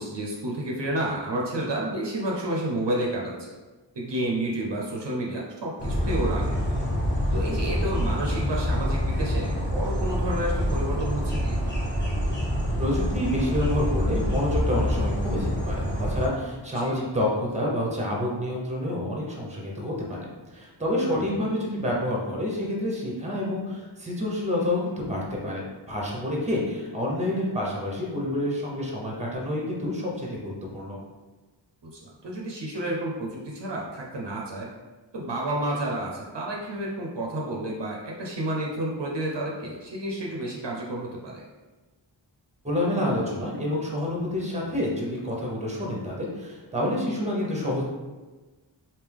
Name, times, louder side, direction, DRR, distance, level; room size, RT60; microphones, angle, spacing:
voice 1, 0.0-3.5 4.0-6.7 7.3-11.6 16.8-17.0 21.1-21.5 31.8-34.7 35.1-41.4, right 1 dB, 60° right, -2 dB, 0.7 m, -30 dB
sound 1, 5.8-16.3, equal, 25° left, 1.2 m, -26 dB
voice 2, 12.8-31.0 42.6-47.8, left 1 dB, 15° right, -3 dB, 0.9 m, -28 dB
3.4 x 2.7 x 3.5 m, 1.2 s
wide cardioid pair, 75°, 47 cm